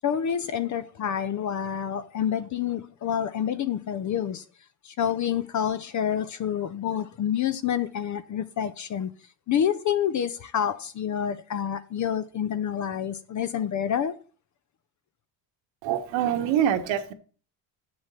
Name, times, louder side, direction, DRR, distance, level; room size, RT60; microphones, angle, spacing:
voice 1, 0.0-4.4 4.8-9.1 9.5-14.2, left 9 dB, 40° left, 0.6 m, -28 dB
voice 2, 15.8-17.1, right 10 dB, 70° right, 1.4 m, -25 dB
7.6 x 6.3 x 5.7 m
cardioid pair, 105°, 46 cm